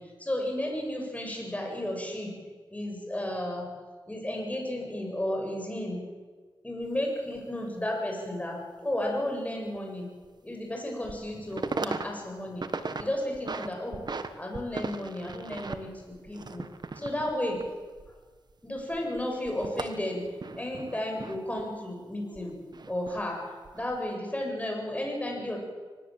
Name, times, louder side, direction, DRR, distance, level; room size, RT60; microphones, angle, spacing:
voice 1, 0.0-2.3 2.7-3.7 4.1-6.0 6.6-10.1 10.4-14.0 14.4-16.6 16.9-17.6 18.1-18.2 18.6-20.2 20.5-25.6, left 1 dB, 15° left, 1 dB, 7.4 m, -33 dB
sound 1, 6.8-6.9 7.3-7.4 9.7-9.8 10.2-10.3 10.9-11.2 11.5-12.1 12.4-13.0 13.3-14.3 14.5-18.5 18.8-21.6 22.3-23.2 23.6-24.0, right 4 dB, 50° right, 1.5 m, -37 dB
25.0 x 19.0 x 7.8 m, 1.4 s
wide cardioid pair, 85°, 9 cm